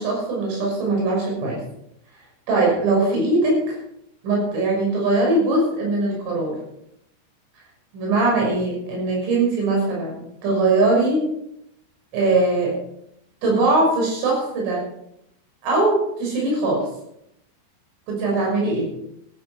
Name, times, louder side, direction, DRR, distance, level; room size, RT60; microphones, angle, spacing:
voice 1, 0.0-1.6 2.5-3.6 4.2-6.6 7.9-11.2 12.1-12.8 13.4-14.8 15.6-16.9 18.1-18.9, right 2 dB, 85° right, -2 dB, 8.7 m, -21 dB
15.5 x 13.5 x 4.9 m, 0.78 s
omnidirectional pair, 5.5 m